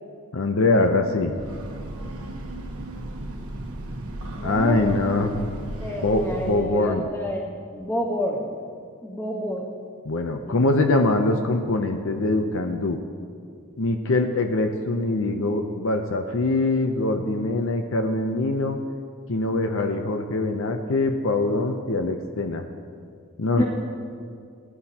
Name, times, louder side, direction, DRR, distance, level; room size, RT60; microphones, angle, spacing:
voice 1, 0.3-1.3 4.4-5.5 6.0-7.1 10.1-13.0 13.8-18.8 19.3-22.6 23.4-23.6, left 2 dB, 65° left, 5 dB, 0.7 m, -23 dB
Breathing / Train, 1.1-6.9, right 1 dB, 85° right, 1.2 m, -35 dB
voice 2, 4.3-5.0 5.8-8.6 9.0-9.7 10.4-10.6 23.6-23.7, equal, 10° left, -4 dB, 2.0 m, -29 dB
18.0 x 11.0 x 2.9 m, 2.2 s
head